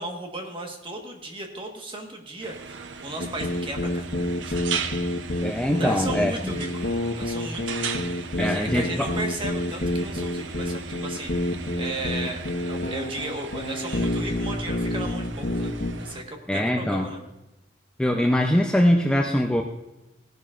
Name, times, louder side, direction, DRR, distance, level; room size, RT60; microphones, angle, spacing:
voice 1, 0.0-4.1 4.4-4.6 5.8-6.7 7.2-7.8 8.2-11.3 11.8-12.4 12.7-15.7 16.0-17.2, right 2 dB, 25° right, 2 dB, 1.4 m, -35 dB
sound 1, 2.4-16.2, right 6 dB, 80° right, 0.6 m, -38 dB
sound 2, 3.2-15.9, left 1 dB, 75° left, 1.2 m, -28 dB
voice 2, 5.4-6.5 8.4-9.1 16.5-17.1 18.0-19.6, left 1 dB, 5° left, 1 dB, 0.5 m, -22 dB
16.5 x 11.0 x 2.5 m, 0.99 s
head